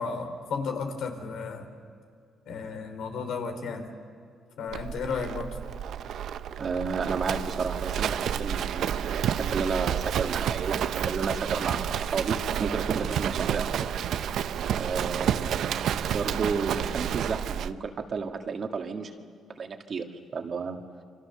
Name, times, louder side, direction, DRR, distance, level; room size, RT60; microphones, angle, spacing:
voice 1, 0.0-1.7 2.5-3.9 4.6-5.6, left 5 dB, 80° left, 5 dB, 3.3 m, -33 dB
Livestock farm animals working animals, 4.7-17.7, right 9 dB, 75° right, 0.7 m, -30 dB
voice 2, 6.6-13.9 14.7-19.1 19.6-20.8, right 5 dB, 50° right, 4 dB, 2.0 m, -32 dB
28.0 x 25.0 x 6.8 m, 2.3 s
cardioid pair, 90°, 0 cm